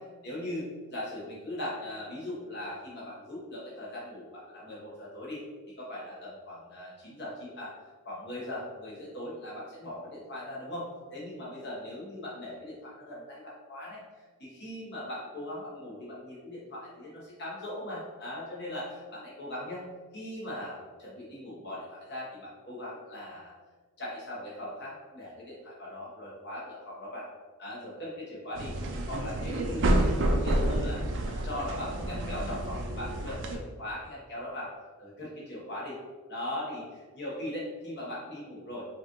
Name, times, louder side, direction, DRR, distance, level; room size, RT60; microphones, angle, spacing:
voice 1, 0.2-5.4 5.8-7.7 8.0-14.0 14.4-19.9 20.1-23.5 24.0-27.3 27.6-28.8 29.1-30.1 30.4-34.7 35.0-36.0 36.3-38.8, left 1 dB, 50° left, -7 dB, 1.2 m, -39 dB
sound 1, 28.5-33.6, right 1 dB, 55° right, 0.5 m, -29 dB
5.0 x 2.5 x 3.0 m, 1.4 s
head